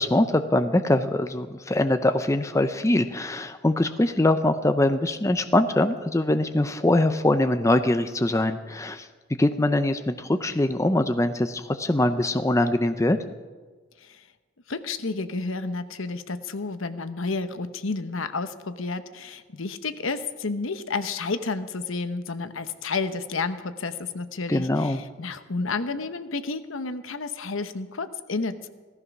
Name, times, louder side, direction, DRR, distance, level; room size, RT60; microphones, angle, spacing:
voice 1, 0.0-9.1 9.4-13.2 24.5-25.0, left 1 dB, 15° left, 9 dB, 0.5 m, -23 dB
voice 2, 14.7-28.7, left 3 dB, 75° left, 10 dB, 1.0 m, -31 dB
16.5 x 14.5 x 6.0 m, 1.4 s
head